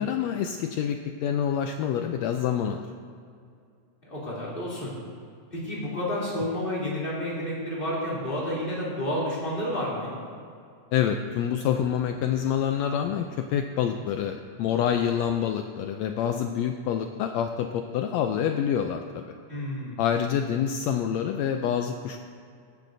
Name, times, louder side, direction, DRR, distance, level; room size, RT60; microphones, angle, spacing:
voice 1, 0.0-2.9 10.9-19.2 20.0-22.2, left 9 dB, 85° left, 6 dB, 1.5 m, -27 dB
voice 2, 4.0-4.9 5.5-10.2 19.5-20.0, left 1 dB, 15° left, -7 dB, 3.0 m, -30 dB
16.5 x 10.5 x 2.6 m, 2.4 s
omnidirectional pair, 3.5 m